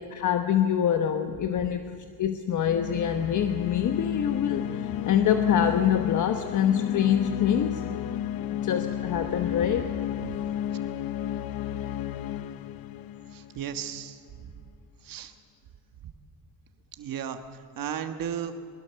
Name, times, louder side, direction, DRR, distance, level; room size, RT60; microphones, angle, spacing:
voice 1, 0.0-7.9 8.6-9.9, left 9 dB, 55° left, 6 dB, 1.1 m, -25 dB
sound 1, 2.6-14.1, left 10 dB, 75° left, 0.8 m, -32 dB
voice 2, 13.3-14.2 15.0-15.3 17.0-17.4 17.8-18.5, right 9 dB, 70° right, 7 dB, 1.5 m, -34 dB
22.5 x 21.0 x 7.0 m, 2.3 s
cardioid pair, 145°, 35 cm